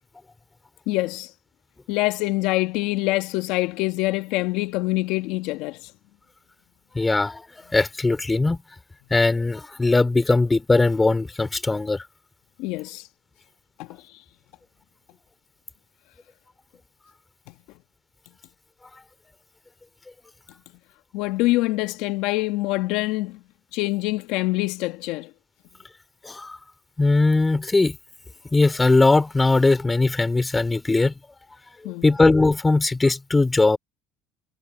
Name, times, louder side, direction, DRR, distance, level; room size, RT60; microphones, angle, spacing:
voice 1, 0.9-1.3 1.9-5.9 12.6-13.1 13.8-14.2 21.1-23.4 23.7-25.3 31.8-32.1, left 20 dB, 70° left, 1.7 m, -25 dB
voice 2, 6.9-7.4 7.7-8.6 9.1-12.0 26.2-26.6 27.0-28.0 28.5-31.1 31.8-33.8, left 3 dB, 15° left, 3.1 m, -20 dB
hypercardioid pair, 75°, 0 cm